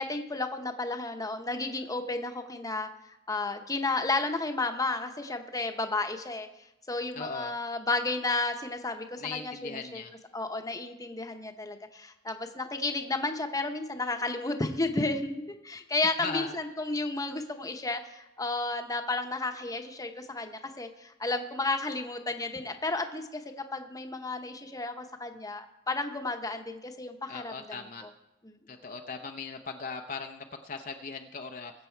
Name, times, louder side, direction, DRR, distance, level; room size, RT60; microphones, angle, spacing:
voice 1, 0.0-2.9 3.3-6.5 6.9-10.0 10.3-23.4 23.7-28.1 28.4-28.6, left 3 dB, 15° left, 6 dB, 0.9 m, -32 dB
voice 2, 7.1-7.5 9.2-10.1 16.2-16.5 27.3-28.0 28.7-31.7, left 5 dB, 40° left, 4 dB, 0.6 m, -38 dB
21.5 x 7.5 x 4.5 m, 0.91 s
head